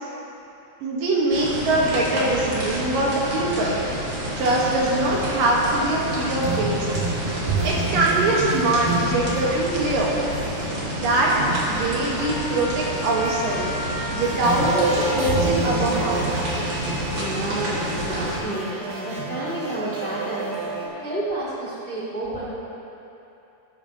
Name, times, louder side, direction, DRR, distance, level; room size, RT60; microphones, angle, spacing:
voice 1, 0.8-4.0 4.4-6.9 7.1-7.3 7.6-10.2 10.8-13.7 14.1-14.8 15.1-16.3, right 2 dB, 70° right, -4 dB, 3.0 m, -23 dB
sound 1, 1.3-18.4, right 1 dB, 40° right, 2.3 m, -29 dB
sound 2, 4.4-10.6 11.1-13.0 13.2-20.9, right 2 dB, 85° right, 4.0 m, -29 dB
Trumpet, 11.9-15.3, left 1 dB, 25° right, 1.7 m, -34 dB
voice 2, 16.9-22.4, right 1 dB, 5° left, -9 dB, 1.6 m, -31 dB
19.0 x 8.9 x 2.9 m, 2.9 s
omnidirectional pair, 4.2 m